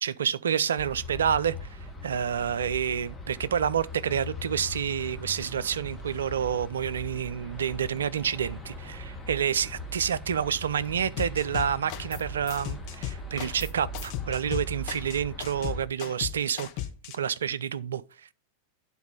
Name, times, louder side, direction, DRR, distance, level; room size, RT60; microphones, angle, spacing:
voice 1, 0.0-16.7 17.1-18.0, right 8 dB, 65° right, 0.4 m, -29 dB
sound 1, 0.8-15.9, left 1 dB, 5° left, 1.6 m, -40 dB
sound 2, 11.2-12.2 12.5-17.2, left 11 dB, 45° left, 1.0 m, -36 dB
9.4 x 4.1 x 5.2 m
figure-of-eight pair, 90°, 0 cm